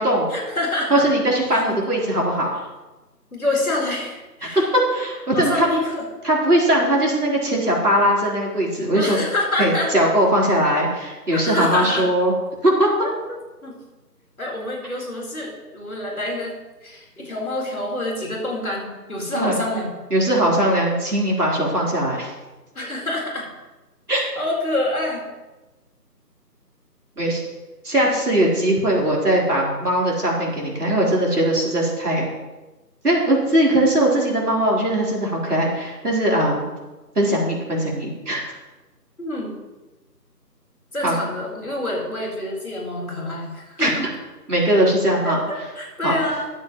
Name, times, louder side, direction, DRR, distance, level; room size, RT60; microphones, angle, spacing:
voice 1, 0.3-1.0 1.5-1.8 3.3-4.7 5.3-6.1 8.9-9.9 11.3-12.0 13.0-13.1 13.6-13.7 14.4-16.5 16.8-19.9 22.7-23.5 24.1-25.2 39.2-39.6 40.9-44.0 45.2-46.5, left 1 dB, 60° left, -3 dB, 4.2 m, -27 dB
voice 2, 0.9-2.5 4.4-4.6 4.9-5.7 6.2-9.2 9.6-12.3 12.6-12.9 19.3-19.6 20.1-22.3 24.1-24.2 27.2-27.4 27.8-32.3 33.0-36.6 37.2-38.5 41.0-41.2 43.8-43.9 44.5-45.4 46.0-46.2, right 1 dB, 65° right, -4 dB, 4.1 m, -20 dB
14.5 x 8.7 x 3.1 m, 1.1 s
figure-of-eight pair, 165°, 49 cm